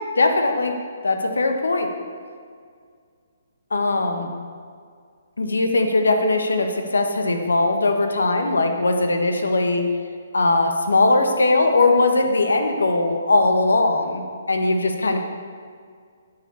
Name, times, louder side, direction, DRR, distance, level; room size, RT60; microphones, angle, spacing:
voice 1, 0.2-0.8 1.0-1.9 3.7-4.3 5.4-9.8 10.3-15.2, left 2 dB, 90° left, 5 dB, 1.4 m, -20 dB
8.9 x 6.9 x 6.9 m, 2.1 s
hypercardioid pair, 145°, 0 cm